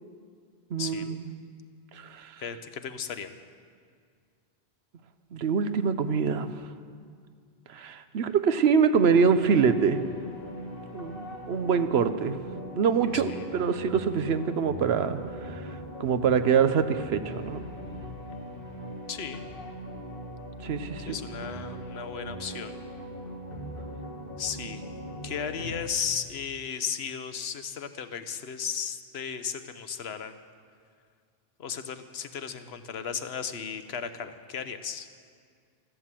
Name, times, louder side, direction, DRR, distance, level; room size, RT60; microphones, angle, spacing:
voice 1, 0.7-1.3 2.0-2.3 5.3-6.5 7.7-10.0 10.9-12.4 12.7-15.6 16.0-17.6 20.6-21.1, right 6 dB, 90° right, 11 dB, 1.0 m, -25 dB
voice 2, 2.4-3.3 13.1-13.5 19.1-19.4 21.1-22.8 24.4-24.8 25.2-30.4 31.6-35.1, left 7 dB, 85° left, 10 dB, 1.1 m, -35 dB
sound 1, 9.1-25.8, equal, 60° left, 2.3 m, -40 dB
15.0 x 11.5 x 7.5 m, 2.1 s
omnidirectional pair, 1.0 m